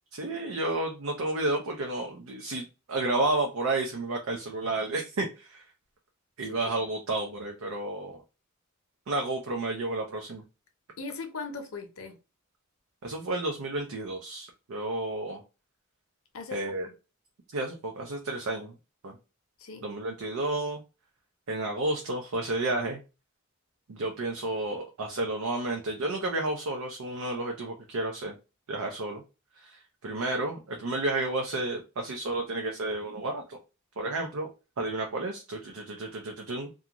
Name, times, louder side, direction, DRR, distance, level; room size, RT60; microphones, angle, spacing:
voice 1, 0.1-5.6 6.4-8.2 9.1-10.4 13.0-15.4 16.5-16.9 17.5-18.7 19.0-19.1 19.8-20.8 21.5-23.0 23.9-28.3 28.7-29.2 29.6-33.6 34.0-34.5 34.8-36.7, right 2 dB, 85° right, 0.5 m, -31 dB
voice 2, 11.0-12.1 16.3-16.9 19.6-19.9, left 4 dB, 70° left, 0.7 m, -39 dB
2.4 x 2.3 x 2.9 m
head